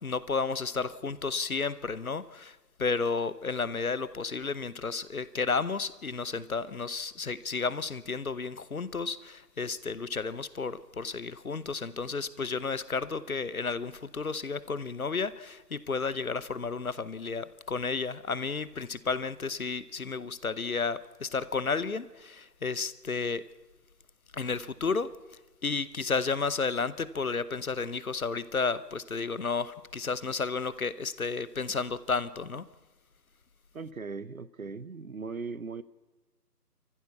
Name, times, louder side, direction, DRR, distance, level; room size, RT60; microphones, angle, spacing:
voice 1, 0.0-23.4 24.3-25.1 25.6-32.6, left 4 dB, 60° left, 17 dB, 0.9 m, -32 dB
voice 2, 33.7-35.8, right 4 dB, 60° right, 17 dB, 0.8 m, -38 dB
27.0 x 14.5 x 7.0 m, 1.2 s
figure-of-eight pair, 165°, 48 cm